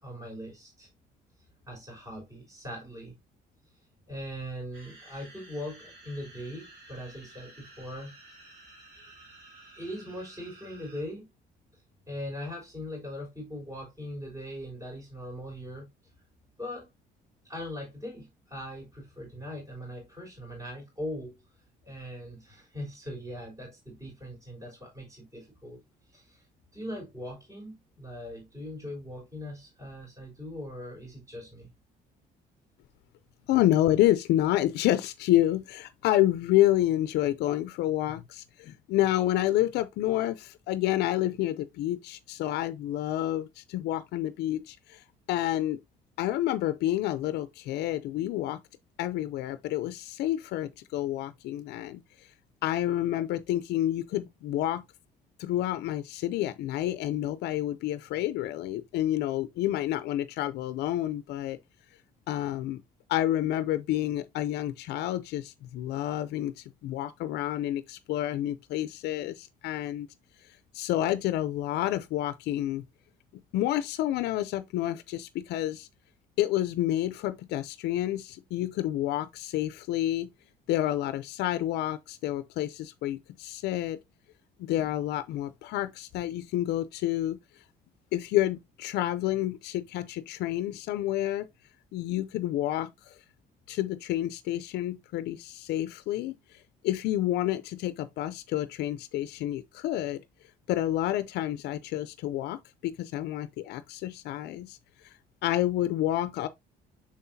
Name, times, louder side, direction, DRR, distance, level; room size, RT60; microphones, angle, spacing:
voice 1, 0.0-0.9 1.7-3.1 4.1-8.1 9.0-9.2 9.7-11.3 12.1-15.9 16.6-16.9 17.4-21.4 21.8-25.8 26.1-26.5 26.7-31.7, equal, 20° right, 3.8 m, -40 dB
sound 1, 4.7-11.0, right 2 dB, 70° right, 3.5 m, -52 dB
voice 2, 33.5-45.8 46.2-48.6 49.0-52.3 52.6-54.8 55.4-61.6 62.3-62.8 63.1-70.1 70.7-72.8 73.5-75.9 76.4-80.3 80.7-84.0 84.6-87.4 88.1-91.5 91.9-93.2 93.7-100.2 100.7-104.8 105.0-105.2 105.4-106.5, left 14 dB, 80° left, 0.5 m, -29 dB
6.3 x 5.6 x 2.7 m
cardioid pair, 110°, 17 cm